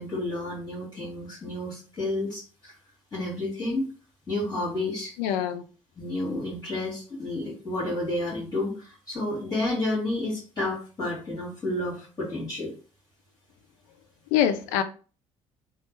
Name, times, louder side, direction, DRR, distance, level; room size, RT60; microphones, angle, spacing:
voice 1, 0.0-2.8 3.1-3.9 4.3-5.1 6.0-12.7, left 2 dB, 25° left, 1.7 m, -30 dB
voice 2, 5.2-5.6 14.3-14.8, left 10 dB, 60° left, 0.4 m, -24 dB
3.1 x 2.4 x 3.1 m
figure-of-eight pair, 50°, 16 cm